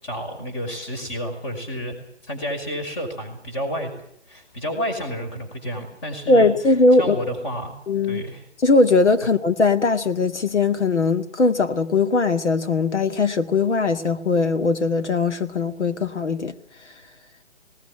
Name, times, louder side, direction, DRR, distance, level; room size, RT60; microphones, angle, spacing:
voice 1, 0.0-2.0 2.2-3.9 4.3-6.5 7.0-7.8 8.0-8.4, equal, 25° left, 5.5 m, -30 dB
voice 2, 6.3-7.2 7.9-8.2 8.6-16.5, left 3 dB, 85° left, 2.0 m, -20 dB
19.0 x 18.5 x 9.9 m
hypercardioid pair, 165°, 34 cm